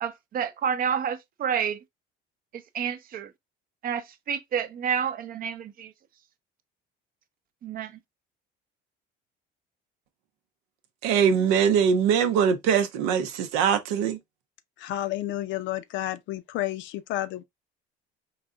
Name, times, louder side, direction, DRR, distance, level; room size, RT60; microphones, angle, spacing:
voice 1, 0.0-1.8 2.7-3.3 3.8-5.9 7.6-7.9, right 7 dB, 45° right, 0.6 m, -29 dB
voice 2, 11.0-14.2, right 7 dB, 90° right, 0.6 m, -22 dB
voice 3, 14.8-17.4, left 14 dB, 65° left, 0.5 m, -31 dB
3.9 x 2.8 x 2.3 m
supercardioid pair, 100°, 21 cm